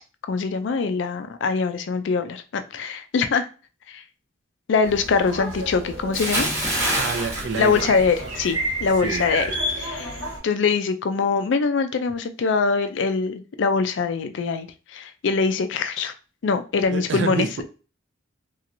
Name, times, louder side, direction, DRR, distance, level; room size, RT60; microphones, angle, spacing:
voice 1, 0.3-3.5 3.9-4.0 4.7-6.5 7.6-9.5 9.7-10.1 10.4-14.7 14.9-16.1 16.4-17.6, left 5 dB, 60° left, 9 dB, 0.4 m, -23 dB
sound 1, 4.8-10.4, equal, 80° right, 1.3 m, -31 dB
Bathtub (filling or washing) / Splash splatter, 6.1-8.6 8.9-9.2, right 1 dB, 15° right, 0.9 m, -26 dB
voice 2, 6.9-7.9 9.0-9.3 16.9-17.6, right 4 dB, 60° right, 7 dB, 0.5 m, -28 dB
3.0 x 2.9 x 2.6 m, 0.35 s
head